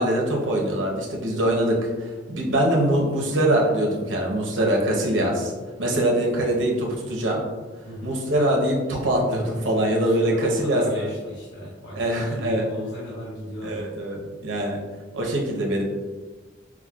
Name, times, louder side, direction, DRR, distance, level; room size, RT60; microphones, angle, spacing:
voice 1, 0.0-1.9 2.3-5.5 5.8-7.4 8.0-11.1 11.9-12.6 13.6-14.8 15.1-15.8, right 1 dB, 85° right, -1 dB, 0.8 m, -23 dB
voice 2, 7.8-8.2 9.8-14.1, left 1 dB, 60° left, -6 dB, 1.0 m, -36 dB
5.9 x 2.1 x 2.4 m, 1.3 s
head